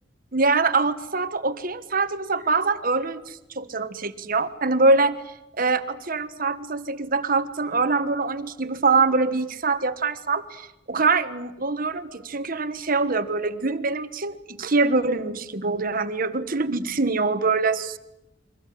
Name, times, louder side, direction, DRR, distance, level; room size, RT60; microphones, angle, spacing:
voice 1, 0.3-18.0, right 3 dB, 50° right, 11 dB, 1.4 m, -24 dB
30.0 x 24.0 x 7.7 m, 0.93 s
head